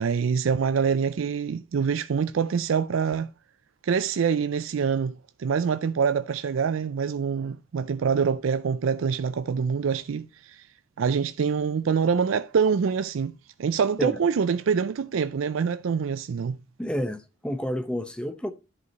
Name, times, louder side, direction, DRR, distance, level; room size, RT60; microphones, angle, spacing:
voice 1, 0.0-3.3 3.8-10.6 11.0-13.3 13.6-16.6, right 6 dB, 80° right, 0.4 m, -25 dB
voice 2, 16.8-18.5, equal, 5° left, 0.7 m, -30 dB
11.0 x 4.7 x 4.1 m
head